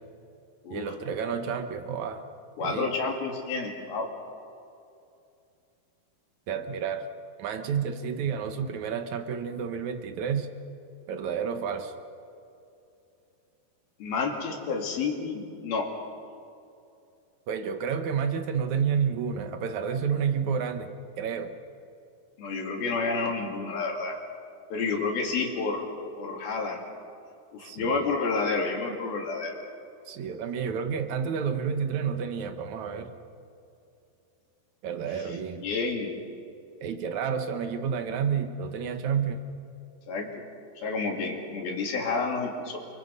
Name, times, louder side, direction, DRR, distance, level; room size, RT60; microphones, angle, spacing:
voice 1, 0.7-2.2 2.6-2.9 6.5-7.1 7.4-10.5 11.1-11.9 17.5-21.5 27.6-28.1 30.1-33.1 34.8-35.7 36.8-39.4, right 7 dB, 60° right, 7 dB, 2.1 m, -30 dB
voice 2, 2.6-4.1 14.0-15.9 22.4-24.2 24.7-25.9 26.2-26.8 27.5-29.6 35.1-36.2 40.1-40.4 40.8-42.8, left 4 dB, 70° left, 0 dB, 4.7 m, -30 dB
30.0 x 25.0 x 5.5 m, 2.6 s
omnidirectional pair, 4.5 m